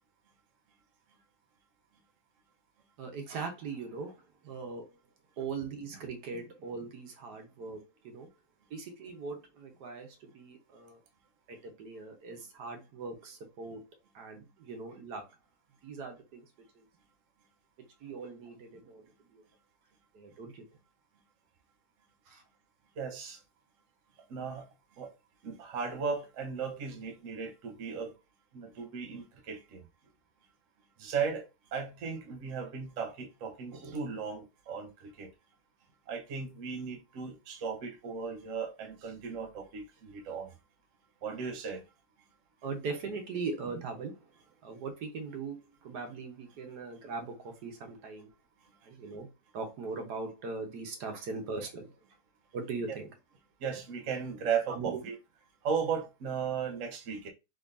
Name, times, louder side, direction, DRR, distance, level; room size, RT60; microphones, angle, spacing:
voice 1, 3.0-4.8 5.4-8.3 8.7-11.0 11.5-13.8 14.1-15.2 15.8-16.5 16.7-16.9 18.0-19.0 19.3-19.4 20.1-20.6 22.3-22.4 42.6-44.3 44.6-48.3 48.8-49.3 49.5-51.9 52.5-53.1 54.7-55.0, right 4 dB, 80° right, 1.5 m, -40 dB
voice 2, 23.0-23.4 24.3-24.7 24.9-25.1 25.4-28.1 28.5-29.8 31.0-35.3 36.1-40.6 41.2-41.8 48.7-48.8 52.9-53.0 53.6-55.1 55.6-57.3, right 6 dB, 60° right, 1.0 m, -36 dB
3.8 x 3.2 x 2.5 m
omnidirectional pair, 1.7 m